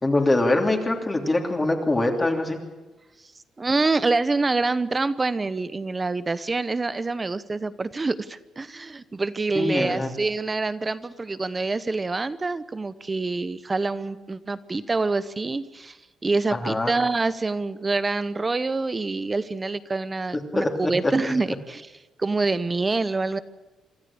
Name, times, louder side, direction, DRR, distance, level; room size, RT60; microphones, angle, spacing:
voice 1, 0.0-2.6 9.5-10.1 16.5-16.9 20.5-20.9, left 2 dB, 20° left, 2 dB, 3.0 m, -23 dB
voice 2, 3.6-16.0 16.2-21.9 22.2-23.4, right 3 dB, 25° right, 15 dB, 0.9 m, -26 dB
25.0 x 13.5 x 8.7 m, 1.1 s
cardioid pair, 90°, 0 cm